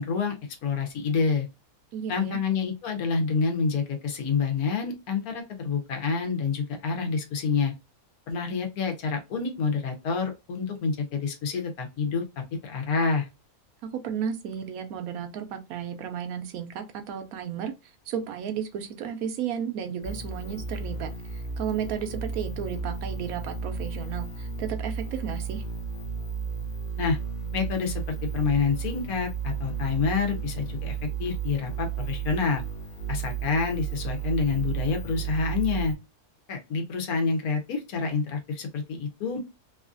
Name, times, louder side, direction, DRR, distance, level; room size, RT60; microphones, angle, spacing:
voice 1, 0.0-1.5 2.1-7.7 8.3-13.3 27.0-27.2 27.5-32.6 33.1-35.9 36.5-39.4, left 5 dB, 75° left, 1.2 m, -28 dB
voice 2, 1.9-2.4 13.8-17.7 18.1-25.6, right 8 dB, 75° right, 1.0 m, -33 dB
sound 1, 20.0-35.9, right 6 dB, 55° left, 0.6 m, -33 dB
3.0 x 2.4 x 2.5 m
omnidirectional pair, 1.6 m